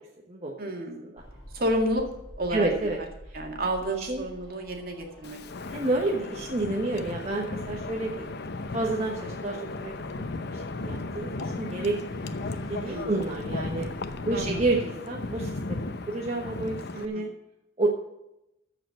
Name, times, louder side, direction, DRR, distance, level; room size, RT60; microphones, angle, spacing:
voice 1, 0.6-1.1 1.5-2.1 2.4-2.7 3.3-5.4 8.2-8.3 12.8-13.2 14.3-14.6 16.9-17.3, right 1 dB, 50° right, 3 dB, 2.0 m, -30 dB
sound 1, 1.2-14.6, equal, 25° left, 4.1 m, -49 dB
voice 2, 2.5-3.0 3.3-3.4 4.0-4.3 5.7-8.3 8.7-12.0 12.5-13.9 14.3-17.3 17.8-17.9, right 2 dB, 35° right, -1 dB, 1.2 m, -30 dB
Wind, 5.2-17.1, left 3 dB, 60° left, 0.8 m, -35 dB
14.0 x 4.9 x 7.5 m, 0.87 s
head